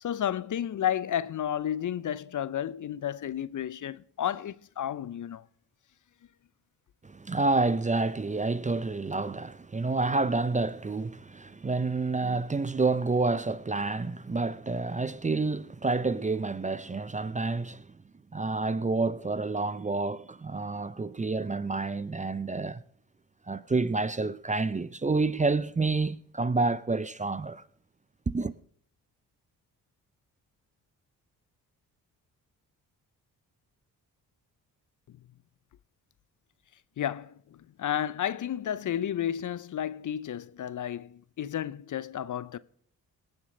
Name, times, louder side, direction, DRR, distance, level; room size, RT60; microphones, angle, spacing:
voice 1, 0.0-5.4 37.0-37.3 37.8-42.6, left 10 dB, 45° left, 0.6 m, -32 dB
voice 2, 7.0-17.9 18.3-22.8 23.5-27.6 28.3-28.5, right 3 dB, 15° right, 0.6 m, -29 dB
18.0 x 7.1 x 5.3 m
hypercardioid pair, 45°, 43 cm